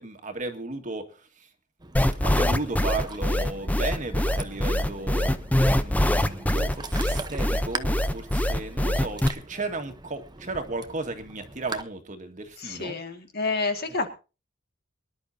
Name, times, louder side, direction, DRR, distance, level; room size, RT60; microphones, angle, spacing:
voice 1, 0.0-1.5 2.2-13.0, right 2 dB, 40° right, 6 dB, 1.9 m, -35 dB
Ocean, 1.8-11.8, right 3 dB, 20° right, 1.0 m, -41 dB
sound 1, 1.9-9.3, left 1 dB, 10° left, 0.7 m, -23 dB
voice 2, 12.6-14.1, left 3 dB, 55° left, 6 dB, 2.1 m, -29 dB
23.5 x 11.0 x 2.8 m, 0.32 s
head